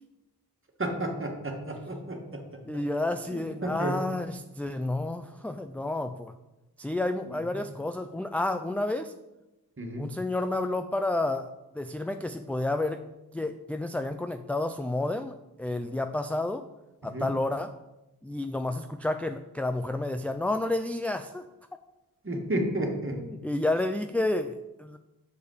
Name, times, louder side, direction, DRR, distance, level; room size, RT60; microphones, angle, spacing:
voice 1, 0.8-2.6 3.3-4.0 7.3-7.6 9.8-10.1 17.1-17.3 22.2-23.2, right 1 dB, 30° right, 2 dB, 2.0 m, -32 dB
voice 2, 2.7-6.3 6.8-9.1 10.0-11.5 11.7-13.0 13.3-16.6 17.0-17.7 18.2-21.4 23.1-25.0, left 2 dB, 5° left, 8 dB, 0.4 m, -30 dB
7.2 x 4.9 x 6.5 m, 0.98 s
cardioid pair, 55°, 39 cm